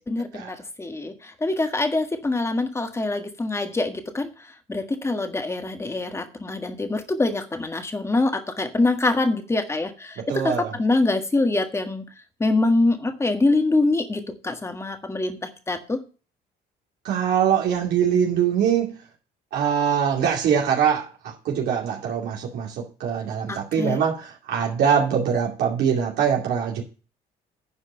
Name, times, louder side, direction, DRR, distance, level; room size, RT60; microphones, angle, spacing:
voice 1, 0.1-4.3 4.7-12.0 12.4-16.0 23.5-24.0, left 2 dB, 15° left, 7 dB, 1.6 m, -24 dB
voice 2, 10.3-10.7 17.0-18.9 19.5-21.0 21.4-22.7 23.0-26.8, right 8 dB, 70° right, -2 dB, 2.5 m, -22 dB
10.0 x 5.0 x 7.4 m, 0.35 s
cardioid pair, 110°, 17 cm